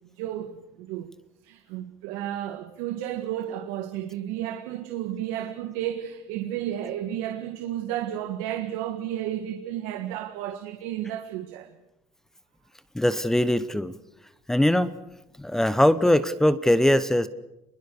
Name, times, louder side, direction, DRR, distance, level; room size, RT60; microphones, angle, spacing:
voice 1, 0.2-1.1 1.4-11.7, right 11 dB, 80° right, 1.8 m, -32 dB
voice 2, 12.9-14.0 14.5-14.9 15.4-17.3, left 1 dB, 5° left, 0.8 m, -21 dB
27.0 x 21.5 x 6.9 m
cardioid pair, 145°, 10 cm